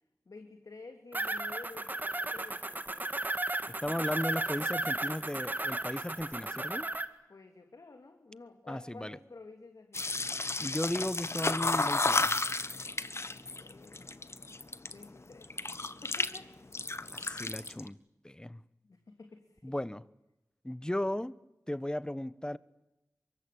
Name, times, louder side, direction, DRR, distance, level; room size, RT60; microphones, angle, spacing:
voice 1, 0.3-2.9 7.3-10.3 13.2-14.2 14.9-15.8 16.0-16.6 18.8-19.8, left 3 dB, 70° left, 2.8 m, -51 dB
sound 1, 1.1-7.0, right 2 dB, 30° right, 2.2 m, -34 dB
voice 2, 3.8-6.9 8.7-9.2 10.6-12.4 17.1-18.0 18.2-18.6 19.6-20.0 20.6-21.3 21.7-22.6, left 1 dB, 15° left, 1.1 m, -35 dB
sound 2, 9.9-15.0 15.4-16.4 16.6-17.9, left 3 dB, 45° left, 1.4 m, -32 dB
23.5 x 23.5 x 8.6 m
cardioid pair, 45°, 6 cm